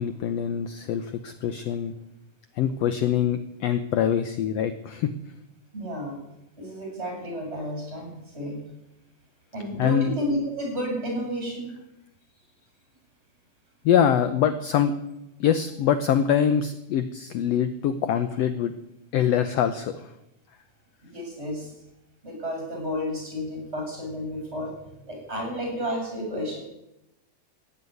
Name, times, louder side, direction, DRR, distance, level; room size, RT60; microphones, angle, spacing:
voice 1, 0.0-1.9 2.6-5.1 9.8-10.1 13.8-14.9 15.4-18.7 19.1-20.1, left 9 dB, 70° left, 10 dB, 1.6 m, -24 dB
voice 2, 5.7-6.2 6.6-8.6 9.5-11.7 21.0-21.7 22.2-24.7 25.1-26.6, equal, 15° right, 1 dB, 7.4 m, -31 dB
16.0 x 9.6 x 9.4 m, 0.88 s
omnidirectional pair, 3.7 m